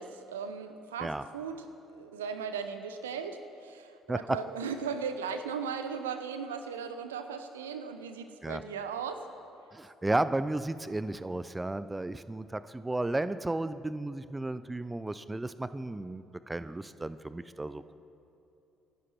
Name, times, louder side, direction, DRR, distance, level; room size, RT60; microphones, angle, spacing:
voice 1, 0.0-9.2 16.2-16.4, right 6 dB, 80° right, 9 dB, 0.8 m, -37 dB
voice 2, 9.7-17.9, right 2 dB, 15° right, 14 dB, 0.6 m, -33 dB
26.0 x 11.0 x 4.5 m, 2.8 s
figure-of-eight pair, 50°, 0 cm